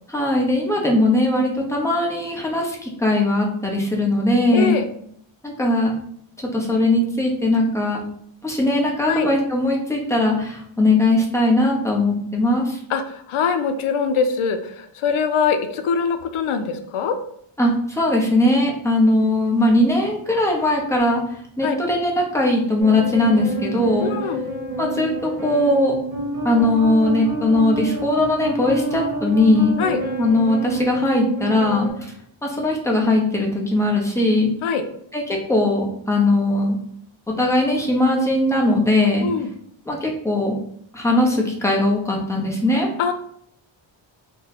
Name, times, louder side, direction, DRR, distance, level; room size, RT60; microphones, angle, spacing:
voice 1, 0.1-4.8 5.4-6.0 6.5-8.0 8.4-12.8 17.6-21.2 21.6-24.1 24.8-25.9 26.4-29.7 30.2-32.1 32.4-34.5 35.1-36.8 37.4-39.3 39.9-40.6 40.9-42.9, left 1 dB, 5° left, -2 dB, 0.6 m, -19 dB
voice 2, 4.5-4.9 9.1-9.3 12.9-17.2 21.6-21.8 24.0-24.5 29.8-30.0 34.6-34.8 39.2-39.5 43.0-43.1, left 6 dB, 85° left, 7 dB, 0.6 m, -23 dB
sound 1, 22.8-31.9, right 1 dB, 35° right, 1.0 m, -28 dB
2.7 x 2.2 x 3.9 m, 0.66 s
wide cardioid pair, 130°, 48 cm